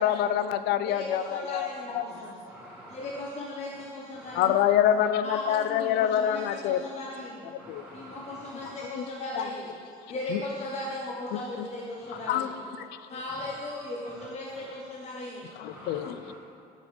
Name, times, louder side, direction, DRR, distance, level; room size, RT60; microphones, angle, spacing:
voice 1, 0.0-1.7 1.9-2.0 4.4-6.8 7.5-7.9 9.0-9.1 9.4-9.5 10.3-10.4 11.3-11.7 12.3-12.5 12.8-12.9 15.6-16.3, left 10 dB, 80° left, 12 dB, 0.5 m, -26 dB
voice 2, 0.8-2.4 2.9-4.6 5.2-7.5 7.9-9.7 10.1-12.6 13.1-15.5, left 1 dB, 40° left, -3 dB, 1.1 m, -37 dB
voice 3, 2.4-3.1 7.6-8.7 12.0-12.3 13.4-13.5 15.7-16.3, right 1 dB, 5° right, -6 dB, 1.1 m, -48 dB
9.1 x 5.3 x 5.0 m, 2.4 s
cardioid pair, 110°, 17 cm